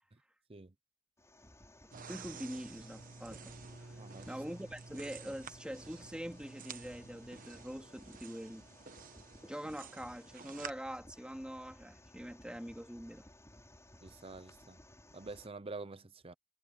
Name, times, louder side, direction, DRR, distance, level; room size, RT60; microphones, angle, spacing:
sound 1, 1.2-15.5, left 1 dB, 15° left, 6.1 m, -59 dB
voice 1, 1.8-3.6 3.8-4.0 4.3-8.6 9.4-13.3, equal, 5° right, 2.6 m, -44 dB
sound 2, 1.9-10.7, right 5 dB, 45° right, 1.2 m, -51 dB
voice 2, 4.0-4.3 14.0-14.8 15.1-16.3, right 3 dB, 30° right, 0.8 m, -47 dB
head